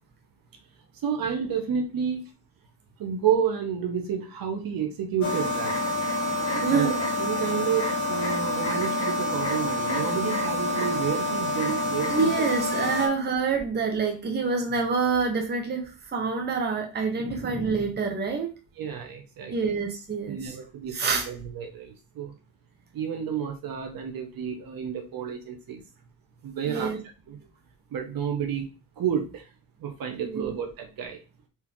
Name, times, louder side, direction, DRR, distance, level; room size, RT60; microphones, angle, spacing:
voice 1, 1.0-2.3 3.0-5.8 6.7-6.9 7.2-12.3 18.8-19.7 20.3-22.3 22.9-25.8 26.4-26.9 27.3-27.4 27.9-28.7 29.0-29.5 29.8-31.2, right 8 dB, 70° right, 4 dB, 1.2 m, -30 dB
sound 1, 5.2-13.1, left 1 dB, 50° left, 1.6 m, -27 dB
voice 2, 6.5-7.0 12.1-18.5 19.5-20.5 20.9-21.3 26.6-27.0 30.3-30.5, right 4 dB, 30° right, 2 dB, 1.0 m, -27 dB
4.5 x 3.0 x 3.6 m, 0.31 s
cardioid pair, 140°, 36 cm